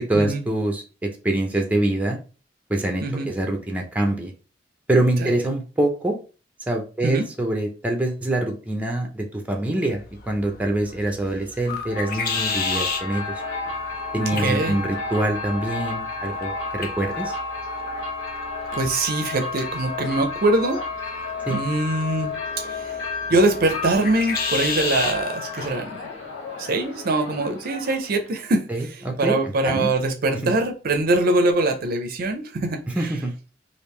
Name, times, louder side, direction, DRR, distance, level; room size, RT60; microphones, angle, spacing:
voice 1, 0.0-2.2 2.7-4.3 4.9-6.2 6.7-13.4 14.1-17.3 21.5-21.6 28.7-29.4 29.6-29.9 30.4-30.5 33.0-33.5, right 1 dB, 10° right, 0.6 m, -25 dB
voice 2, 3.0-3.3 5.2-5.4 7.0-7.3 14.4-14.8 18.7-20.9 21.5-23.0 23.3-26.0 26.6-33.2, right 2 dB, 50° right, 0.5 m, -23 dB
sound 1, 9.9-25.2, left 5 dB, 55° left, 0.6 m, -34 dB
sound 2, 11.8-28.3, left 3 dB, 80° left, 0.9 m, -32 dB
3.4 x 2.5 x 3.1 m
head